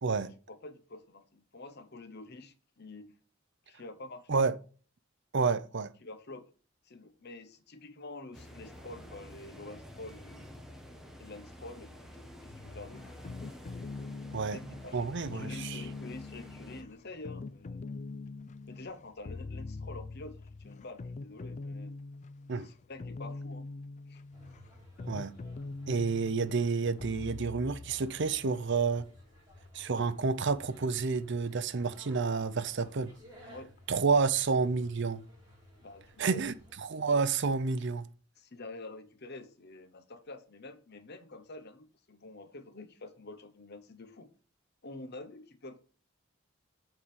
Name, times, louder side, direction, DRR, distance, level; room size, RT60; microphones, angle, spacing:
voice 1, 0.2-3.1 3.7-4.4 6.0-6.5 6.8-10.6 11.2-12.0 12.4-13.2 14.4-17.9 18.7-22.0 22.6-23.7 24.1-24.2 33.4-33.7 34.1-34.2 34.6-34.7 35.8-36.4 38.4-44.3 44.8-45.8, left 2 dB, 55° left, 1.1 m, -47 dB
voice 2, 5.3-5.9 14.3-14.6 14.9-15.7 22.5-22.7 25.1-25.3 25.9-29.1 29.7-33.1 33.9-35.2 36.2-36.5 36.8-38.0, right 4 dB, 60° right, 0.6 m, -29 dB
sound 1, 8.3-16.8, equal, ahead, 1.4 m, -50 dB
sound 2, 12.5-28.7, left 3 dB, 35° left, 0.4 m, -43 dB
sound 3, 24.3-36.8, left 1 dB, 20° right, 4.5 m, -56 dB
7.6 x 4.8 x 7.2 m
head